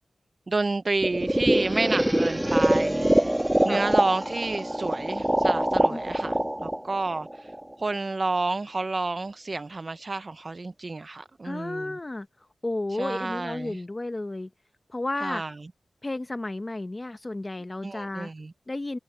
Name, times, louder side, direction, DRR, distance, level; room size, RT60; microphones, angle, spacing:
voice 1, 0.5-7.5 7.8-12.0 12.9-13.8 15.2-15.5 17.8-18.5, right 3 dB, 40° right, 0.4 m, -30 dB
sound 1, 1.0-7.9, right 1 dB, 10° right, 1.3 m, -24 dB
voice 2, 11.4-12.3 12.6-14.5 14.9-15.4 16.0-18.3 18.7-19.0, left 2 dB, 25° left, 0.8 m, -32 dB
wide cardioid pair, 105°, 0 cm